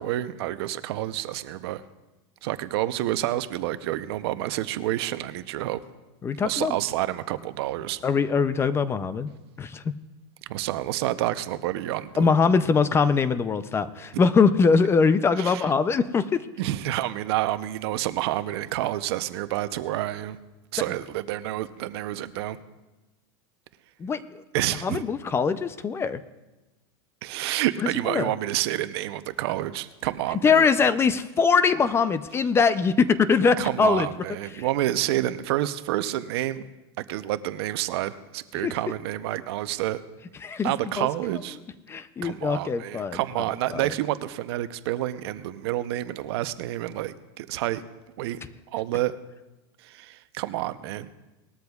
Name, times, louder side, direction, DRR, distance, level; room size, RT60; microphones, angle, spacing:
voice 1, 0.0-1.8 2.4-5.8 6.4-8.0 10.5-12.3 15.4-15.6 16.6-20.4 20.7-22.6 24.5-25.0 27.2-30.7 33.6-36.6 37.0-40.0 40.6-41.6 42.2-47.8 48.2-48.4 48.7-49.1 49.8-51.1, right 14 dB, 70° right, 12 dB, 0.7 m, -29 dB
voice 2, 6.2-6.8 8.0-9.3 9.6-9.9 12.2-16.5 24.0-24.2 24.8-26.2 27.8-28.3 30.4-34.1 34.5-34.6 38.6-38.7 40.4-41.1 41.9-43.2 43.7-43.8, left 5 dB, 20° left, 13 dB, 0.4 m, -22 dB
19.5 x 13.0 x 2.4 m, 1.1 s
supercardioid pair, 140°, 14 cm